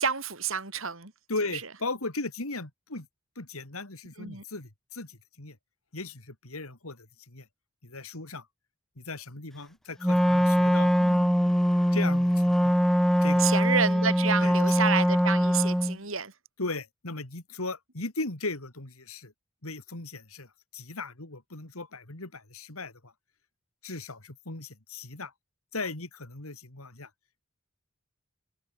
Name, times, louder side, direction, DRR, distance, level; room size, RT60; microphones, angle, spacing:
voice 1, 0.0-1.1 1.5-1.6 4.2-4.4 11.0-11.5 13.4-16.3, right 6 dB, 70° right, 4.7 m, -29 dB
voice 2, 1.3-3.1 3.3-5.6 5.9-7.5 7.8-8.5 9.0-11.0 11.9-12.8 13.2-13.5 14.4-14.5 16.6-19.3 19.6-23.1 23.8-25.3 25.7-27.1, left 3 dB, 85° left, 3.2 m, -37 dB
Wind instrument woodwind instrument, 10.0-16.0, equal, ahead, 1.0 m, -22 dB
open air
head